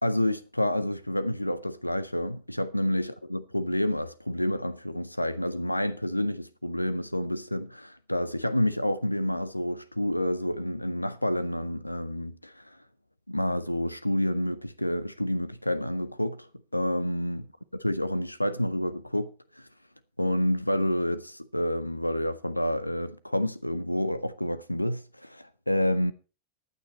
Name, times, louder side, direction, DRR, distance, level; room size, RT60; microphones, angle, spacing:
voice 1, 0.0-12.8 13.3-17.4 17.8-19.3 19.6-19.7 20.2-26.1, left 1 dB, 85° left, 0.6 m, -29 dB
15.0 x 9.6 x 4.2 m
figure-of-eight pair, 90°, 0 cm